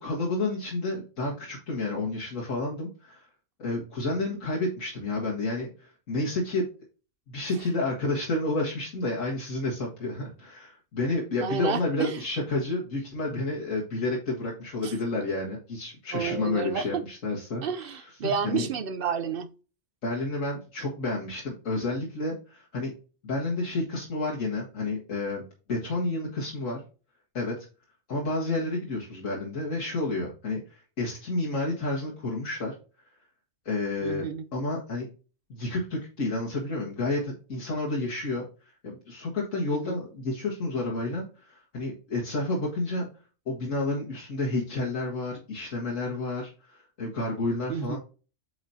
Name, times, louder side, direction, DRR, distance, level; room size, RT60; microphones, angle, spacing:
voice 1, 0.0-3.3 3.6-6.7 7.3-17.6 18.2-18.7 20.0-22.9 23.2-25.4 25.7-26.8 27.3-27.5 28.1-32.7 33.7-34.2 34.5-35.1 35.5-43.1 43.5-48.0, left 2 dB, 90° left, 2.0 m, -30 dB
voice 2, 11.4-12.2 14.8-14.9 16.1-17.0 17.6-19.5 34.0-34.4 39.7-40.0 47.7-48.0, right 6 dB, 60° right, 0.7 m, -30 dB
8.1 x 4.9 x 2.7 m
omnidirectional pair, 1.3 m